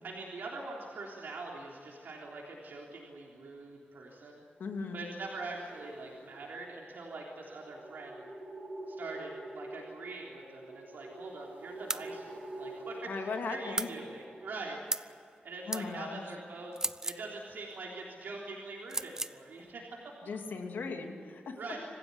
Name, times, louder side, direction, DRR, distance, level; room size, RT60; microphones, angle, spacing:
voice 1, 0.0-4.4 4.9-8.2 8.9-15.0 15.4-16.8 17.0-19.8 21.6-21.8, right 3 dB, 80° right, -2 dB, 3.6 m, -43 dB
voice 2, 4.6-5.0 13.1-13.9 15.7-16.2 20.2-21.5, left 4 dB, 80° left, 3 dB, 2.8 m, -38 dB
sound 1, 4.6-14.5, right 1 dB, 45° right, 6.3 m, -47 dB
sound 2, 11.9-12.1 13.8-13.9 14.9-15.1 15.7-15.9 16.7-17.2 18.9-19.4, right 2 dB, 15° right, 0.5 m, -34 dB
25.5 x 15.5 x 9.9 m, 2.4 s
wide cardioid pair, 170°, 3 cm